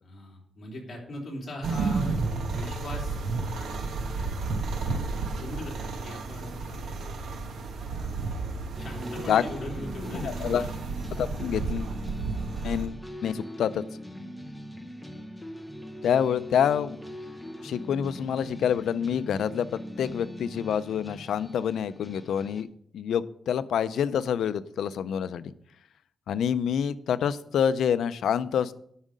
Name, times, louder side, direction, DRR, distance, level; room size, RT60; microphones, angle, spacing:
voice 1, 0.0-2.1 2.5-3.2 4.8-5.0 5.3-6.5 7.8-8.2 8.8-10.7, left 1 dB, 35° left, -2 dB, 3.2 m, -40 dB
sound 1, 1.6-12.9, right 3 dB, 75° right, 1.2 m, -32 dB
sound 2, 8.8-22.6, equal, ahead, 0.8 m, -41 dB
voice 2, 10.1-10.7 11.2-11.9 12.6-13.8 16.0-17.0 17.6-19.7 20.0-22.7 22.9-25.5 26.3-28.7, left 8 dB, 90° left, 14 dB, 0.5 m, -27 dB
11.0 x 6.4 x 5.2 m, 0.68 s
wide cardioid pair, 170°, 0 cm